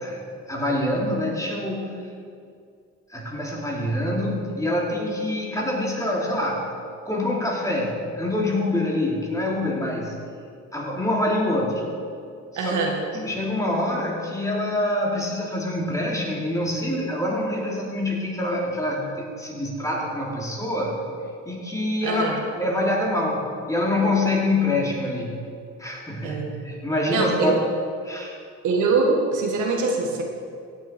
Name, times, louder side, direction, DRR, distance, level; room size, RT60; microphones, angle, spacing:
voice 1, 0.5-1.9 3.1-6.7 7.1-10.1 10.7-11.8 12.5-12.8 13.1-21.0 21.5-25.3 25.8-27.6 28.0-28.4, left 1 dB, 10° left, -3 dB, 3.0 m, -25 dB
voice 2, 12.6-13.0 22.0-22.4 26.2-26.7 27.1-27.5 28.6-30.2, right 4 dB, 80° right, 1 dB, 1.9 m, -23 dB
16.5 x 7.3 x 4.5 m, 2.3 s
cardioid pair, 90°, 30 cm